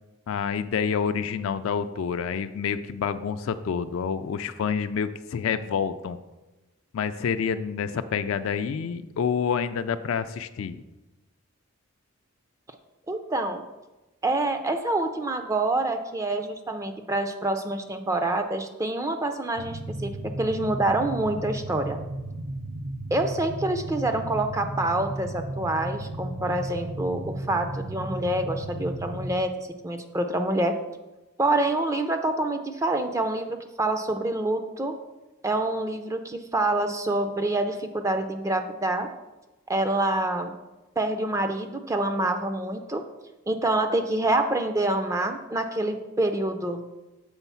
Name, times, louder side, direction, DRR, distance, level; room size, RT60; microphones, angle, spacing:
voice 1, 0.3-6.2 6.9-10.8, left 6 dB, 70° left, 10 dB, 0.3 m, -28 dB
voice 2, 13.1-13.6 14.2-22.0 23.1-30.7 31.4-34.9 35.4-39.1 39.7-40.5 41.0-43.0 43.5-46.8, right 2 dB, 15° right, 7 dB, 0.4 m, -26 dB
sound 1, 19.6-29.3, right 1 dB, 80° right, 0.6 m, -34 dB
7.1 x 3.8 x 5.6 m, 1.1 s
head